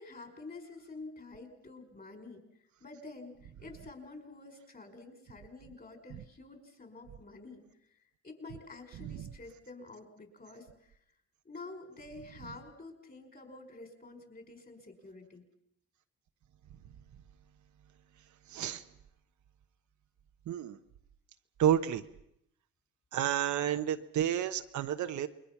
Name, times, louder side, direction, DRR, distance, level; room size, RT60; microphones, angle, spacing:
voice 1, 0.0-2.4 2.8-8.0 8.2-11.0 11.4-15.5, left 3 dB, 30° left, 6 dB, 5.1 m, -49 dB
voice 2, 18.5-18.8 20.5-20.8 21.6-22.0 23.1-25.3, right 10 dB, 70° right, 8 dB, 1.2 m, -30 dB
28.5 x 22.0 x 6.0 m, 0.74 s
cardioid pair, 90°, 30 cm